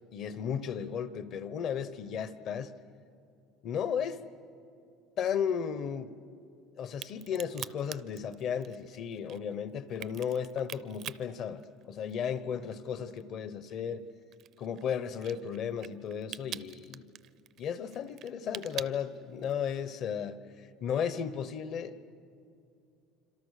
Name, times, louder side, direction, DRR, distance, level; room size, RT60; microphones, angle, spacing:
voice 1, 0.1-2.7 3.6-4.2 5.2-6.1 6.8-14.0 14.6-17.1 17.6-22.1, left 7 dB, 40° left, 0.9 m, -34 dB
Crack, 6.9-12.4 12.7-19.7, right 12 dB, 40° right, 0.5 m, -45 dB
27.0 x 26.5 x 6.6 m
cardioid pair, 165°, 0 cm